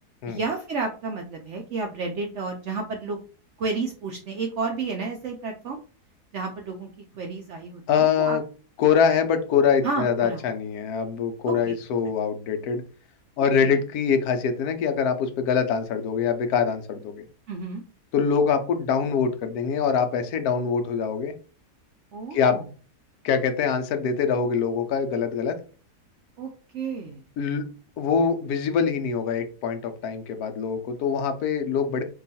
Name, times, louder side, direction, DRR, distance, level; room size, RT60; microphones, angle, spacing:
voice 1, 0.3-3.2 3.6-5.8 6.3-6.9 7.1-8.4 9.8-10.4 11.5-11.7 13.4-13.8 17.5-17.8 22.1-22.6 26.4-27.2, right 4 dB, 70° right, 2 dB, 0.7 m, -31 dB
voice 2, 7.9-8.4 8.8-12.8 13.4-17.2 18.1-21.3 22.3-22.6 23.2-25.6 27.4-27.6 28.0-32.0, left 6 dB, 75° left, 7 dB, 1.1 m, -24 dB
2.9 x 2.3 x 4.0 m, 0.37 s
omnidirectional pair, 1.7 m